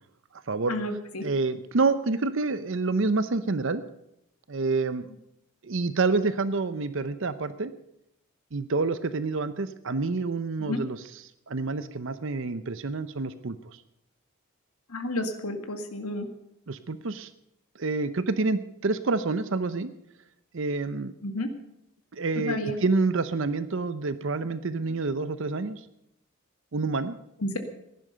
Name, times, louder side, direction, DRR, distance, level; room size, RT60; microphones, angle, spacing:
voice 1, 0.7-1.2 10.7-10.8 14.9-16.3 21.2-21.5 22.5-22.8 27.4-27.6, left 1 dB, 90° left, 7 dB, 2.0 m, -31 dB
voice 2, 1.2-3.8 4.5-5.1 5.6-7.7 8.5-11.0 11.5-13.8 16.7-17.3 17.8-19.9 20.5-21.1 22.1-25.8 26.7-27.2, right 3 dB, 60° right, 13 dB, 0.7 m, -28 dB
16.0 x 11.0 x 6.8 m, 0.80 s
head